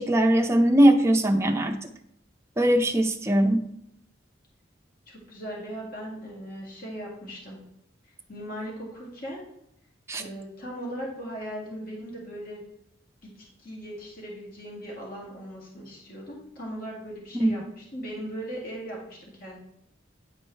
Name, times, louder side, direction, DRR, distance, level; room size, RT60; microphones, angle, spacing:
voice 1, 0.0-1.8 2.6-3.7 10.1-10.2 17.3-17.5, right 1 dB, 15° right, 3 dB, 0.5 m, -20 dB
voice 2, 5.1-7.6 8.3-9.4 10.2-12.6 13.2-13.3 13.6-19.6, equal, 50° left, -4 dB, 2.0 m, -38 dB
9.5 x 4.4 x 3.1 m, 0.75 s
head